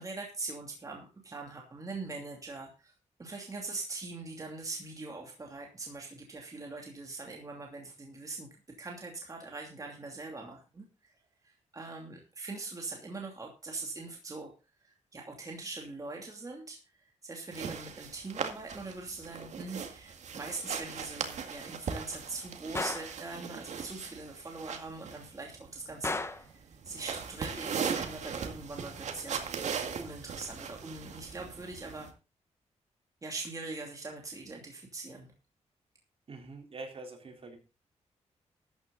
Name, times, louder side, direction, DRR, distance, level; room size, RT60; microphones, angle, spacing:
voice 1, 0.0-2.9 3.2-8.5 8.8-11.1 11.4-14.5 14.8-26.6 26.8-29.4 30.0-32.1 33.2-35.3, right 3 dB, 30° right, 1 dB, 2.8 m, -42 dB
sound 1, 17.5-32.1, right 6 dB, 70° right, 2.0 m, -39 dB
Gunshot gunfire, 22.8-23.2 26.0-26.5, left 3 dB, 20° left, 1.1 m, -34 dB
voice 2, 36.3-37.6, right 3 dB, 50° right, 3 dB, 3.8 m, -44 dB
13.5 x 9.4 x 4.0 m, 0.30 s
cardioid pair, 110°, 12 cm